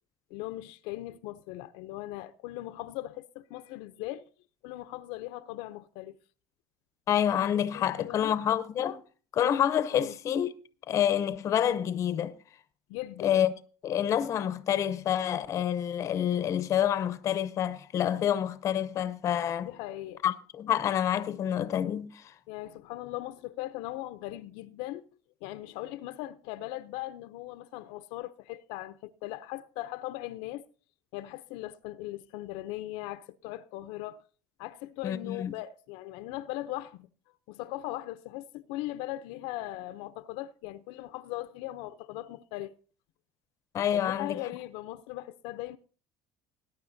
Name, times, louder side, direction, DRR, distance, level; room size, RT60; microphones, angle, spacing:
voice 1, 0.3-4.3 4.6-6.2 7.7-8.3 9.9-10.2 12.9-13.4 19.6-20.2 22.5-25.1 25.4-30.6 31.1-34.2 34.6-42.7 43.9-45.8, left 16 dB, 70° left, 0.5 m, -39 dB
voice 2, 7.1-9.0 9.3-10.5 10.9-12.3 13.2-13.5 13.8-19.7 20.2-22.3 35.0-35.5 43.7-44.4, left 10 dB, 35° left, 0.6 m, -28 dB
20.0 x 10.0 x 2.6 m
cardioid pair, 160°, 9 cm